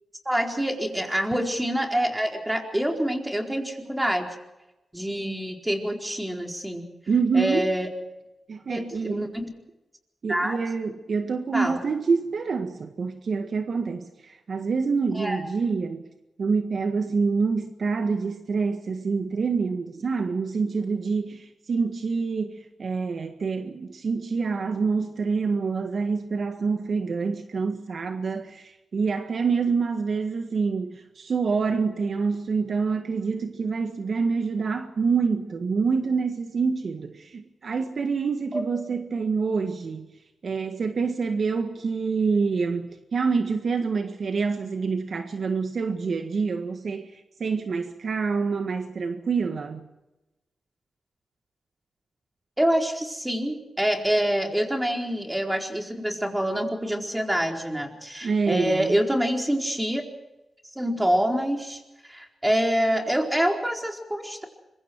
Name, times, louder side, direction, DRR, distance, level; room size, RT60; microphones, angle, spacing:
voice 1, 0.2-4.3 4.9-6.9 7.3-7.9 8.7-9.5 10.3-10.6 11.5-11.8 15.1-15.4 38.5-38.8 52.6-60.0 60.7-61.8 62.1-64.5, equal, 10° right, 2 dB, 4.4 m, -26 dB
voice 2, 7.1-7.7 8.5-9.3 10.2-16.0 16.4-40.1 40.4-49.9 58.2-59.0, right 5 dB, 65° right, 6 dB, 1.6 m, -26 dB
25.5 x 23.5 x 4.7 m, 1.0 s
cardioid pair, 65°, 0 cm